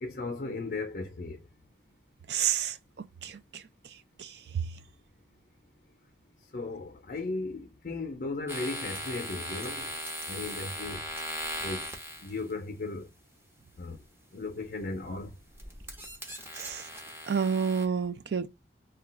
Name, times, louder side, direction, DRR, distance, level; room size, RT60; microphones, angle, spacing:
voice 1, 0.0-1.4 6.5-9.9 10.3-11.0 11.6-11.9 12.2-13.1 13.8-14.0 14.3-15.3, left 3 dB, 55° left, 0.5 m, -36 dB
voice 2, 2.3-2.8 3.2-3.6 4.2-4.7 16.5-16.9 17.3-18.5, right 7 dB, 70° right, 0.4 m, -30 dB
sound 1, 8.5-12.5 14.5-14.8 15.3-17.9, equal, 15° right, 0.6 m, -39 dB
2.3 x 2.2 x 3.7 m
head